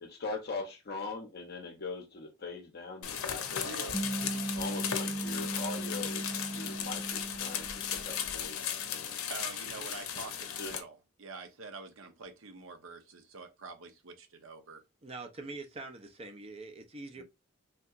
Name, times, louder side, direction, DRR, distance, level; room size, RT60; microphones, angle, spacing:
voice 1, 0.0-3.7 4.5-9.2 10.6-10.7 17.2-17.3, left 3 dB, 50° left, 0.6 m, -41 dB
sound 1, 3.0-10.8, left 8 dB, 90° left, 0.6 m, -36 dB
voice 2, 3.6-4.1 9.3-14.8, right 3 dB, 70° right, 0.7 m, -46 dB
sound 2, 3.9-8.6, right 2 dB, 25° left, 0.8 m, -38 dB
voice 3, 15.0-17.2, right 3 dB, 30° right, 0.4 m, -44 dB
3.4 x 2.8 x 2.4 m
head